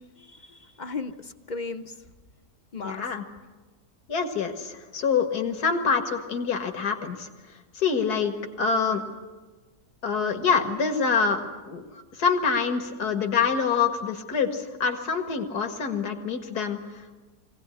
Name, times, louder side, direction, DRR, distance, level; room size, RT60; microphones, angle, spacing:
voice 1, 0.0-2.0 2.7-3.0, left 4 dB, 35° left, 8 dB, 0.9 m, -36 dB
voice 2, 2.8-3.2 4.1-7.3 7.7-9.0 10.0-11.4 11.7-11.9 12.2-17.2, left 5 dB, 80° left, 5 dB, 2.4 m, -26 dB
23.0 x 17.5 x 9.8 m, 1.3 s
omnidirectional pair, 1.7 m